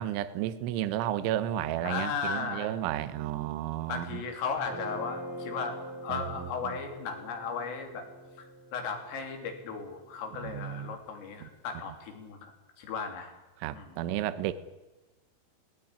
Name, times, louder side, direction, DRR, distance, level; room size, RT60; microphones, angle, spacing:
voice 1, 0.0-4.2 6.1-6.5 10.4-11.0 11.4-11.5 13.6-14.5, right 12 dB, 80° right, 13 dB, 3.4 m, -32 dB
voice 2, 1.8-2.7 3.9-8.0 8.4-8.5 8.7-12.5 12.8-13.3 13.7-13.9, left 5 dB, 80° left, 4 dB, 5.8 m, -36 dB
Guitar, 4.6-10.9, equal, 5° right, 3.0 m, -44 dB
19.5 x 18.0 x 9.9 m, 1.1 s
omnidirectional pair, 5.7 m